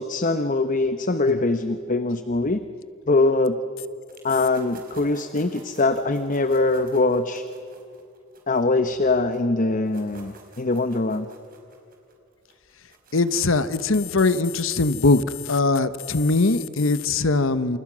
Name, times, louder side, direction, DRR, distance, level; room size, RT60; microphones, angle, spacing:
voice 1, 0.0-2.6 3.1-3.6 4.2-7.4 8.5-11.3, left 2 dB, 40° left, 10 dB, 0.9 m, -22 dB
sound 1, 4.1-9.4 9.7-13.8, right 4 dB, 45° right, 4.7 m, -51 dB
voice 2, 13.1-17.8, left 3 dB, 65° left, 13 dB, 1.1 m, -21 dB
28.5 x 28.5 x 6.2 m, 2.4 s
head